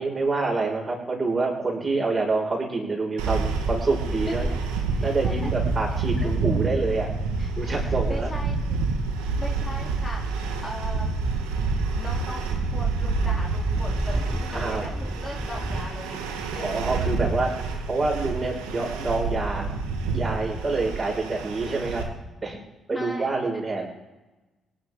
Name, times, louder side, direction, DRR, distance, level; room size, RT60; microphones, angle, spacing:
voice 1, 0.0-4.5 5.0-7.1 7.6-8.3 14.5-14.9 16.6-17.5 17.9-19.7 20.1-22.6 22.9-23.9, right 3 dB, 30° right, -1 dB, 6.3 m, -27 dB
sound 1, 3.2-22.0, right 4 dB, 75° right, 1.9 m, -28 dB
sound 2, 4.1-16.1, equal, ahead, 0.8 m, -35 dB
voice 2, 4.9-5.5 6.2-6.3 7.4-8.8 9.2-10.2 10.6-11.1 11.8-16.2 16.5-16.6 22.5-22.6 22.9-23.3, left 1 dB, 20° left, -3 dB, 3.9 m, -39 dB
25.0 x 11.5 x 4.0 m, 1.1 s
figure-of-eight pair, 45°, 0 cm